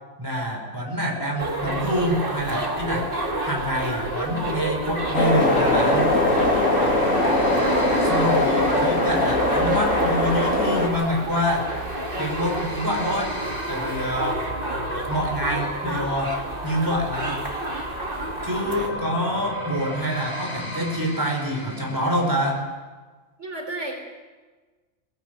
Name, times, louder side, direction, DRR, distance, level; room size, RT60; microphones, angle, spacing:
voice 1, 0.2-3.1 3.4-6.1 8.0-11.7 12.2-13.3 13.7-14.5 15.1-17.4 18.4-22.7, equal, 15° right, 1 dB, 5.2 m, -26 dB
sound 1, 1.4-18.9, right 1 dB, 45° right, 3.0 m, -29 dB
sound 2, 3.9-22.6, right 1 dB, 45° left, 5.2 m, -36 dB
sound 3, 5.1-10.9, left 2 dB, 85° left, 3.1 m, -22 dB
voice 2, 7.5-8.1 23.4-24.0, right 3 dB, 65° right, 2 dB, 3.9 m, -32 dB
21.5 x 19.0 x 9.5 m, 1.3 s
omnidirectional pair, 1.3 m